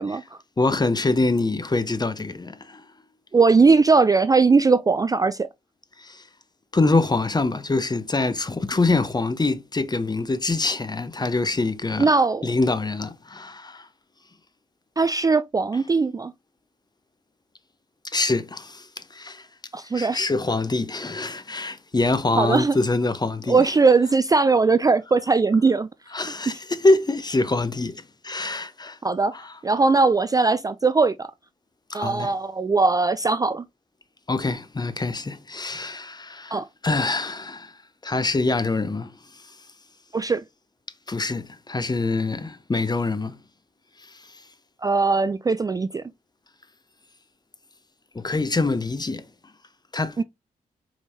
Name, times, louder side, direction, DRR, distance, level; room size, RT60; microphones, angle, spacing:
voice 1, 0.0-0.4 3.3-5.5 12.0-12.5 15.0-16.3 19.7-20.2 22.4-22.8 23.5-25.9 29.0-29.3 29.6-31.3 31.9-33.6 36.5-36.6 40.1-40.4 44.8-46.0 50.2-50.3, right 4 dB, 20° right, 0.3 m, -19 dB
voice 2, 0.6-2.8 6.0-6.3 6.7-12.1 12.4-13.9 18.0-19.5 19.9-23.7 26.1-29.0 29.3-29.6 31.9-32.3 34.3-39.6 41.1-43.4 44.0-44.4 48.1-49.3 49.9-50.2, left 3 dB, 25° left, 0.8 m, -25 dB
5.0 x 3.5 x 2.7 m
supercardioid pair, 45°, 17 cm